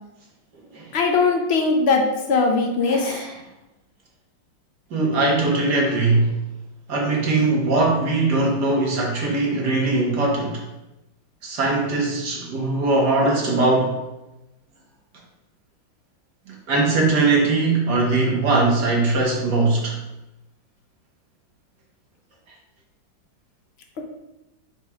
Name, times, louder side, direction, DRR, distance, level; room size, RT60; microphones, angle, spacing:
voice 1, 0.9-3.3, left 4 dB, 70° left, 3 dB, 0.6 m, -20 dB
voice 2, 2.9-3.3 4.9-6.3 6.9-10.6 11.4-14.0 16.5-20.0, right 3 dB, 60° right, -1 dB, 1.8 m, -21 dB
4.7 x 4.2 x 4.7 m, 0.96 s
omnidirectional pair, 2.0 m